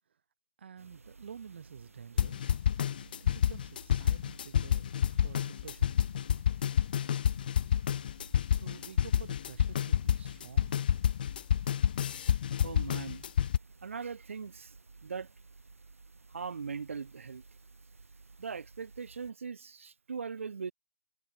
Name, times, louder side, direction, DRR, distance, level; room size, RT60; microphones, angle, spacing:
voice 1, 0.6-2.6 3.2-6.0 8.5-10.8, right 7 dB, 55° right, 3.8 m, -50 dB
sound 1, 0.8-19.3, right 3 dB, 85° right, 4.2 m, -55 dB
sound 2, 2.2-13.6, left 9 dB, 40° left, 0.4 m, -29 dB
voice 2, 12.6-13.2 13.8-14.7 15.0-15.3 16.3-17.4 18.4-20.7, right 5 dB, 70° right, 1.1 m, -40 dB
hypercardioid pair, 155°, 7 cm